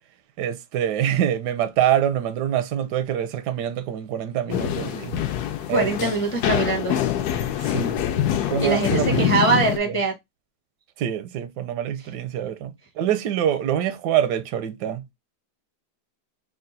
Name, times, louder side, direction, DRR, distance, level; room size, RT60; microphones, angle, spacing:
voice 1, 0.4-5.2 5.7-6.1 7.7-8.0 8.5-9.6 11.0-15.0, right 10 dB, 85° right, 1.2 m, -25 dB
sound 1, 4.5-9.8, left 10 dB, 75° left, 1.1 m, -25 dB
voice 2, 5.7-7.0 8.6-10.1, right 3 dB, 15° left, 0.5 m, -22 dB
3.7 x 2.3 x 3.8 m
omnidirectional pair, 1.8 m